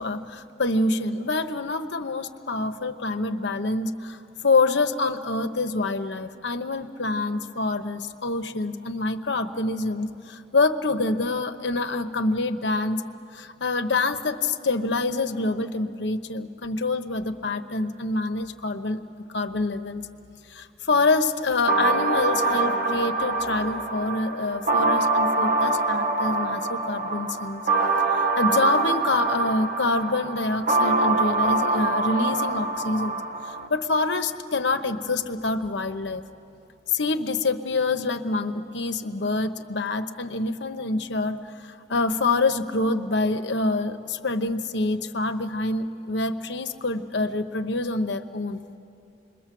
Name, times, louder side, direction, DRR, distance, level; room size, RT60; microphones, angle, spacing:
voice 1, 0.0-4.2 4.4-13.0 13.3-19.0 19.3-20.0 20.5-27.6 28.4-33.2 33.7-36.2 36.9-41.4 41.9-48.6, left 3 dB, 80° left, 7 dB, 1.0 m, -26 dB
sound 1, 21.7-33.7, right 3 dB, 50° right, 1.1 m, -24 dB
27.5 x 22.0 x 7.7 m, 2.7 s
head